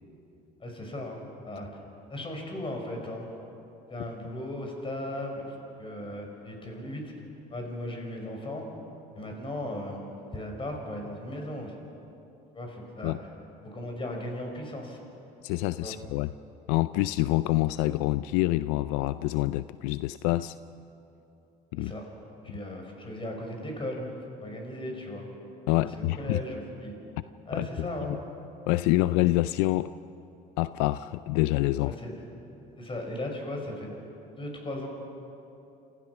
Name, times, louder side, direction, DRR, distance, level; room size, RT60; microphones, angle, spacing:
voice 1, 0.6-1.7 2.1-3.2 3.9-7.1 7.5-8.7 9.1-10.0 10.3-11.7 12.5-13.2 13.6-15.0 15.8-16.0 21.8-22.0 22.4-24.1 24.4-25.2 26.0-26.9 27.5-28.3 31.8-32.2 32.8-34.0 34.4-34.9, left 1 dB, 25° left, 2 dB, 5.8 m, -37 dB
voice 2, 15.4-16.3 16.7-20.5 21.7-21.9 25.7-26.4 27.5-28.2 28.7-29.9 30.6-31.9, left 17 dB, 80° left, 15 dB, 0.4 m, -26 dB
28.0 x 15.0 x 6.0 m, 2.9 s
supercardioid pair, 80°, 19 cm